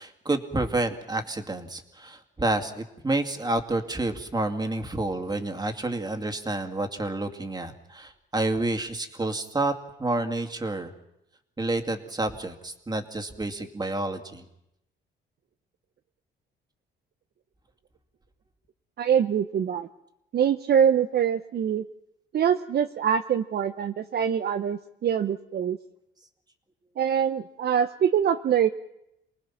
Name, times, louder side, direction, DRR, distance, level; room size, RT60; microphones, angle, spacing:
voice 1, 0.0-9.7 10.0-10.9 11.6-14.4, right 2 dB, 20° right, 5 dB, 2.4 m, -29 dB
voice 2, 19.0-19.9 20.3-21.8 22.3-25.8 27.0-28.7, right 8 dB, 55° right, 9 dB, 0.8 m, -24 dB
29.0 x 19.5 x 6.0 m, 0.84 s
cardioid pair, 90°, 20 cm